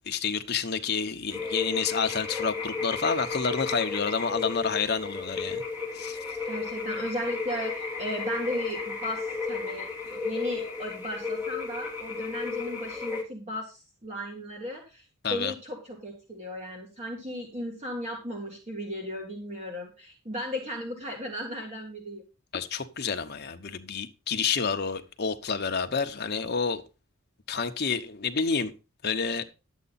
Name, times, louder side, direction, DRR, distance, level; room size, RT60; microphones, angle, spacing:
voice 1, 0.1-5.6 5.9-6.2 15.2-15.5 22.5-26.8 27.5-28.7 29.0-29.4, left 5 dB, 45° left, 0.9 m, -29 dB
sound 1, 1.3-13.2, left 4 dB, 10° right, 2.4 m, -33 dB
voice 2, 6.4-15.0 15.3-22.2, equal, 30° right, 1.9 m, -36 dB
11.0 x 8.3 x 4.1 m
head